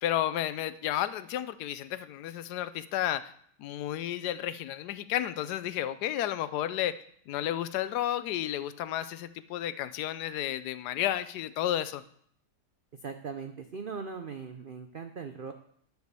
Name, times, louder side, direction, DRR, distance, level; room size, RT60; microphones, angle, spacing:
voice 1, 0.0-3.3 3.6-12.0, left 12 dB, 80° left, 14 dB, 1.1 m, -32 dB
voice 2, 13.0-15.5, right 5 dB, 75° right, 7 dB, 0.5 m, -39 dB
10.5 x 4.7 x 6.7 m, 0.64 s
omnidirectional pair, 1.7 m